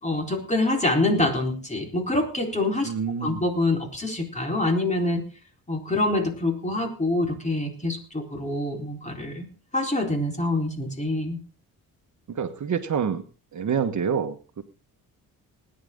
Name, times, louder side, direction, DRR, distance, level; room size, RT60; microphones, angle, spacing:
voice 1, 0.0-2.9 3.2-5.2 5.7-9.5 9.7-11.4, left 2 dB, 20° left, 2 dB, 4.1 m, -25 dB
voice 2, 2.8-3.4 12.3-13.2 13.5-14.6, right 7 dB, 50° right, 7 dB, 1.4 m, -27 dB
20.0 x 10.0 x 3.7 m, 0.36 s
cardioid pair, 105°, 37 cm